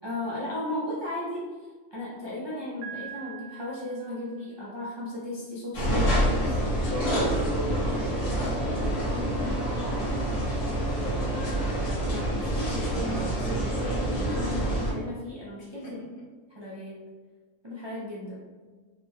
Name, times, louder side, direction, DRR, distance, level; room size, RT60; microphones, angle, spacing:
voice 1, 0.0-1.5 1.9-6.5 11.5-16.0 16.6-17.1 17.6-18.4, left 1 dB, 40° right, -8 dB, 0.4 m, -36 dB
Piano, 2.8-4.7, right 9 dB, 80° right, 1.0 m, -43 dB
sound 1, 5.7-14.9, right 1 dB, 80° left, 1.4 m, -27 dB
voice 2, 7.6-7.9 8.2-11.2 15.8-15.9, left 2 dB, 55° left, -3 dB, 0.7 m, -40 dB
3.6 x 2.2 x 3.0 m, 1.4 s
omnidirectional pair, 1.3 m